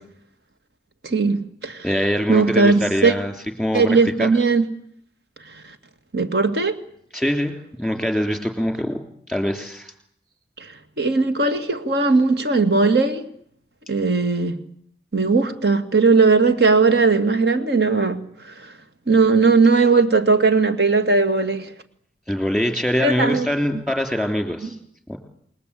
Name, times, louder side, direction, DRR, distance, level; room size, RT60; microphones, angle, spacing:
voice 1, 1.0-1.9 2.3-3.1 3.7-4.7 6.1-6.8 10.6-10.7 11.0-13.2 13.9-14.6 15.1-18.7 19.1-21.7 23.0-23.5, right 4 dB, 65° right, 2.1 m, -18 dB
voice 2, 1.8-3.3 3.6-3.9 4.2-4.3 7.1-7.5 7.8-9.0 9.3-9.9 22.3-24.7 25.1-25.2, equal, ahead, 3.4 m, -23 dB
28.5 x 20.5 x 8.4 m
head